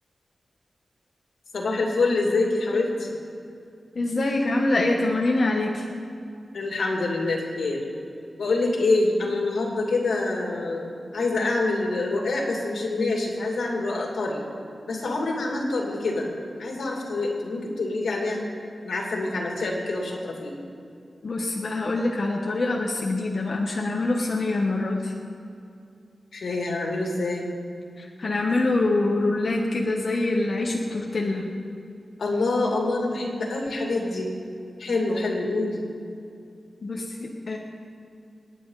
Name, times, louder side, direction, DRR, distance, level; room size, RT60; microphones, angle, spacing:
voice 1, 1.5-3.1 6.5-7.8 8.4-14.4 14.9-16.3 16.6-18.4 18.8-20.6 26.3-27.4 32.2-34.3 34.8-35.8, left 2 dB, 85° left, -1 dB, 2.7 m, -26 dB
voice 2, 3.9-5.9 21.2-25.1 28.0-31.5 36.8-37.6, left 2 dB, 45° left, -1 dB, 1.2 m, -25 dB
28.0 x 9.7 x 4.0 m, 2.5 s
wide cardioid pair, 150°, 0 cm